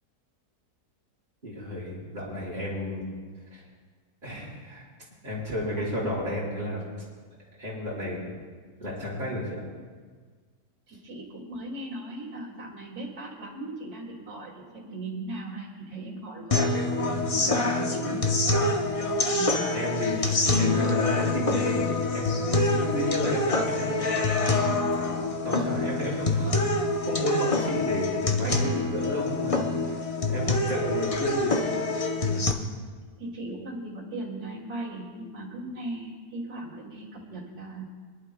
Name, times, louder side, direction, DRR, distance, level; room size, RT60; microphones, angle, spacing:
voice 1, 1.4-3.0 3.5-3.6 4.2-4.9 5.2-6.8 7.6-8.4 8.8-9.6 17.0-17.3 19.7-24.6 25.1-26.7 27.0-31.8, equal, 30° right, -9 dB, 5.0 m, -32 dB
voice 2, 10.9-16.7 17.4-18.3 19.2-19.8 20.2-20.3 33.2-37.8, right 2 dB, 70° right, -6 dB, 2.9 m, -38 dB
sound 1, 16.5-32.5, left 2 dB, 35° left, 0.6 m, -26 dB
25.5 x 11.5 x 2.2 m, 1.5 s
omnidirectional pair, 1.7 m